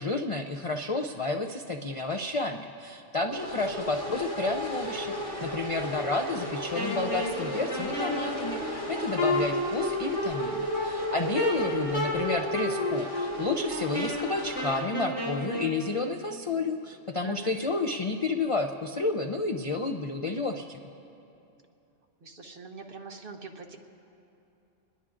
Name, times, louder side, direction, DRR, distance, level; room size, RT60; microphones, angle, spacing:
voice 1, 0.0-20.8, left 3 dB, 45° left, 5 dB, 0.4 m, -31 dB
sound 1, 3.3-14.8, left 1 dB, 25° left, 2.5 m, -35 dB
Wind instrument woodwind instrument, 6.7-15.7, left 1 dB, 85° left, 5.3 m, -32 dB
voice 2, 22.2-23.8, right 4 dB, 50° right, 3 dB, 1.2 m, -44 dB
27.0 x 21.0 x 2.5 m, 2.8 s
omnidirectional pair, 1.3 m